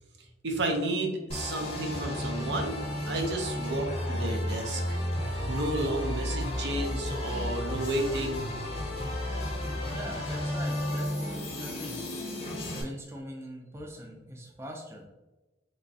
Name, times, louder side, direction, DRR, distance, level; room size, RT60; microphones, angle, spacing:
voice 1, 0.4-2.8 3.1-5.0 5.5-8.5, right 1 dB, 70° right, 3 dB, 0.6 m, -32 dB
sound 1, 1.3-12.8, left 1 dB, 35° left, 0.6 m, -33 dB
voice 2, 9.9-12.1 12.7-15.0, equal, 15° right, 0 dB, 0.4 m, -42 dB
3.4 x 3.0 x 2.7 m, 1.1 s
head